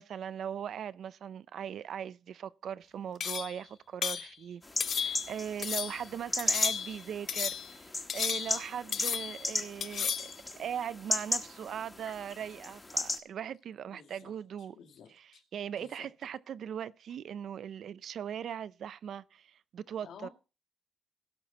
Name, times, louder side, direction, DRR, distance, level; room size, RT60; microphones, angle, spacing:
voice 1, 0.0-4.6 4.9-14.8 15.5-20.3, right 9 dB, 70° right, 0.4 m, -39 dB
sound 1, 3.2-3.6 4.0-4.3 4.8-5.3 5.6-6.0 6.4-7.0 7.3-7.7 8.1-8.7 8.9-9.5 9.8-10.3, left 7 dB, 60° left, 0.5 m, -33 dB
sound 2, 4.6-13.2, left 2 dB, 20° left, 1.5 m, -36 dB
voice 2, 13.9-15.4 15.8-16.1 20.0-20.3, left 7 dB, 80° left, 2.1 m, -53 dB
17.5 x 5.9 x 4.0 m
cardioid pair, 120°, 0 cm